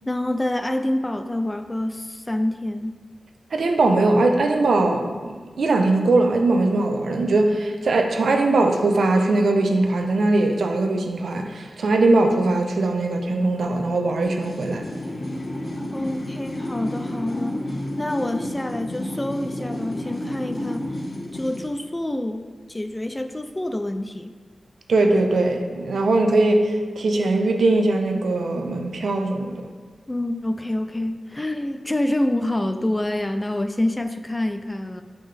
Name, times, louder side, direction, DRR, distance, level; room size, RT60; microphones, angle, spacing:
voice 1, 0.1-3.0 15.9-17.6 18.0-20.9 21.3-24.3 30.1-35.0, left 1 dB, 15° left, 9 dB, 0.3 m, -27 dB
voice 2, 3.5-14.8 24.9-29.5, right 2 dB, 85° right, 3 dB, 0.7 m, -20 dB
sound 1, 14.2-21.7, left 1 dB, 60° left, 1.4 m, -31 dB
7.7 x 5.2 x 3.4 m, 1.5 s
wide cardioid pair, 130°, 0 cm